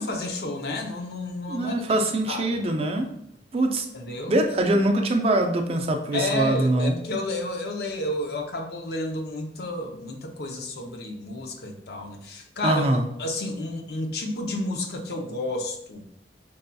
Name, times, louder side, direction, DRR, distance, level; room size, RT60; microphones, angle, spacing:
voice 1, 0.0-1.8 2.3-2.6 3.9-4.4 6.1-16.1, left 1 dB, 60° left, 3 dB, 0.6 m, -31 dB
voice 2, 1.5-3.1 3.5-3.9 4.3-7.0 12.6-13.1, right 1 dB, 35° right, 4 dB, 0.4 m, -23 dB
5.4 x 2.7 x 2.2 m, 0.75 s
head